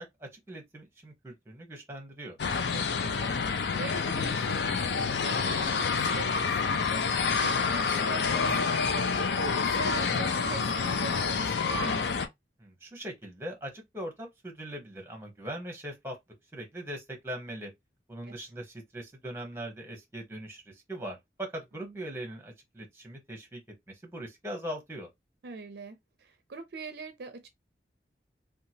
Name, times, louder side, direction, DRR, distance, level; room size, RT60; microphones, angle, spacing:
voice 1, 0.0-2.4 12.6-16.2 16.5-17.7 18.1-23.6 23.9-25.1, right 1 dB, 15° right, 0.9 m, -40 dB
sound 1, 2.4-12.3, left 5 dB, 75° left, 0.4 m, -28 dB
voice 2, 2.7-12.1 18.3-18.4 21.8-22.0 25.4-27.5, right 4 dB, 65° right, 0.4 m, -43 dB
2.8 x 2.3 x 2.7 m
head